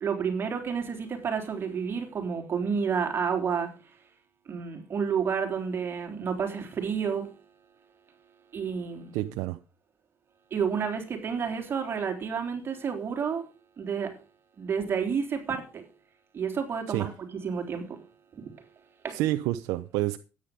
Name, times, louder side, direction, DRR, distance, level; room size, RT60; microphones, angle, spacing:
voice 1, 0.0-3.8 4.5-7.3 8.5-9.1 10.5-13.4 13.8-14.2 14.6-15.8 16.3-17.1 17.4-18.0 18.3-18.5 19.0-19.2, right 6 dB, 45° right, 3.6 m, -30 dB
voice 2, 9.1-9.6 16.9-17.1 19.1-20.2, right 16 dB, 90° right, 0.8 m, -29 dB
13.0 x 9.8 x 5.2 m
cardioid pair, 90°, 6 cm